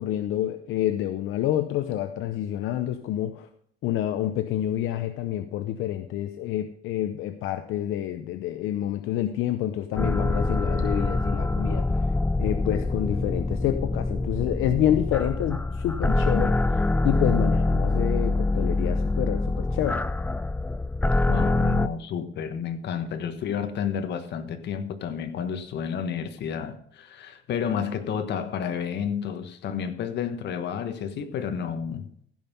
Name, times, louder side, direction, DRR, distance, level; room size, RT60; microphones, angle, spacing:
voice 1, 0.0-3.5 3.8-11.9 12.4-16.6 17.0-20.0, left 12 dB, 80° left, 9 dB, 0.8 m, -28 dB
sound 1, 10.0-21.9, left 2 dB, 10° left, 0.4 m, -25 dB
voice 2, 16.1-16.4 21.3-32.1, left 7 dB, 60° left, 8 dB, 1.4 m, -31 dB
15.5 x 5.6 x 5.5 m, 0.66 s
cardioid pair, 140°, 20 cm